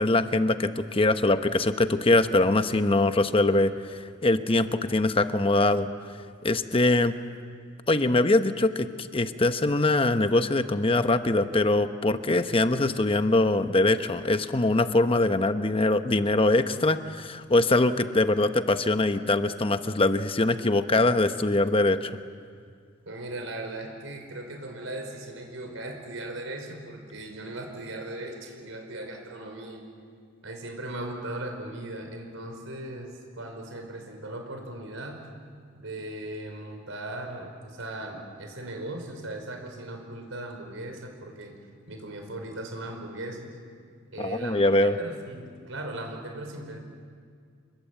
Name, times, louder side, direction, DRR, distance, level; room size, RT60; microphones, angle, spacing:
voice 1, 0.0-5.9 6.4-7.1 7.9-22.1 44.2-45.0, left 2 dB, 25° left, 9 dB, 0.9 m, -23 dB
voice 2, 23.0-29.9 30.4-35.2 35.8-41.5 41.9-43.6 44.1-46.8, right 1 dB, 75° right, 3 dB, 4.8 m, -38 dB
29.0 x 21.0 x 8.2 m, 2.1 s
head